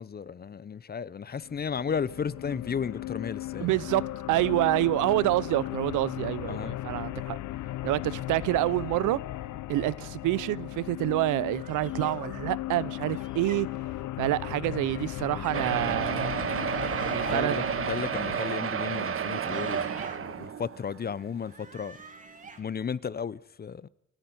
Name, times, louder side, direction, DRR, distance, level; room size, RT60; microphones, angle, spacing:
voice 1, 0.0-3.9 4.4-4.6 6.5-6.7 15.3-15.6 17.2-22.0 22.6-23.9, left 6 dB, 30° left, 0.7 m, -34 dB
sound 1, 1.4-18.4, left 15 dB, 75° left, 0.8 m, -36 dB
voice 2, 3.6-4.0 4.3-7.4 7.8-9.2 9.7-13.7 14.2-16.3 17.0-17.8, right 17 dB, 90° right, 0.7 m, -27 dB
sound 2, 11.6-12.2 13.0-13.6 14.7-15.5 16.6-17.4 19.1-20.2 21.3-22.6, right 3 dB, 25° right, 2.8 m, -48 dB
sound 3, 15.5-21.0 21.6-21.7 22.0-22.1 22.4-22.5, right 7 dB, 45° right, 1.3 m, -31 dB
28.5 x 10.0 x 9.6 m
cardioid pair, 90°, 30 cm